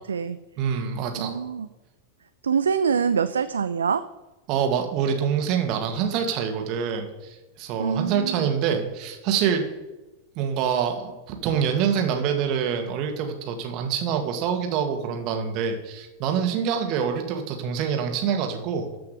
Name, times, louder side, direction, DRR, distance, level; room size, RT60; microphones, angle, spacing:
voice 1, 0.0-0.4 1.2-1.7 2.4-4.0 7.8-8.5, right 6 dB, 70° right, 12 dB, 0.4 m, -25 dB
voice 2, 0.6-1.4 4.5-9.6 10.4-18.9, right 7 dB, 40° right, 4 dB, 2.0 m, -26 dB
13.5 x 5.9 x 6.7 m, 1.0 s
figure-of-eight pair, 90°, 0 cm